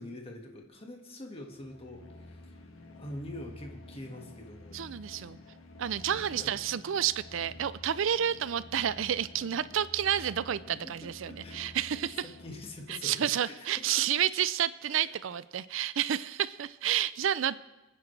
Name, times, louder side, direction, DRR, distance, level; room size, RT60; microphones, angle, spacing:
voice 1, 0.0-2.4 3.0-4.8 6.1-6.5 10.8-13.7 14.9-15.0, left 1 dB, 30° left, 2 dB, 1.8 m, -45 dB
sound 1, 1.5-13.1, left 2 dB, 90° left, 1.8 m, -50 dB
voice 2, 4.7-5.4 5.8-12.3 12.9-17.6, right 9 dB, 70° right, 17 dB, 0.4 m, -30 dB
27.0 x 9.7 x 3.3 m, 1.0 s
head